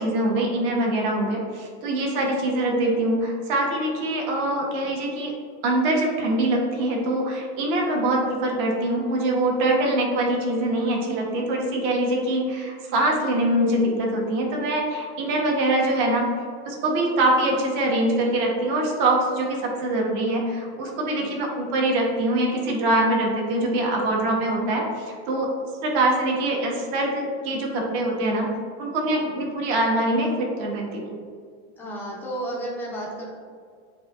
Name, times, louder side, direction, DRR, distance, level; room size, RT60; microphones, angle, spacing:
voice 1, 0.0-5.3 5.6-16.3 16.6-25.5 25.8-28.5 28.8-31.1, right 1 dB, 45° right, -1 dB, 0.9 m, -23 dB
voice 2, 21.0-21.4 29.1-29.4 31.8-33.3, right 1 dB, 5° left, -4 dB, 0.4 m, -33 dB
7.9 x 2.6 x 2.4 m, 2.1 s
supercardioid pair, 175°, 34 cm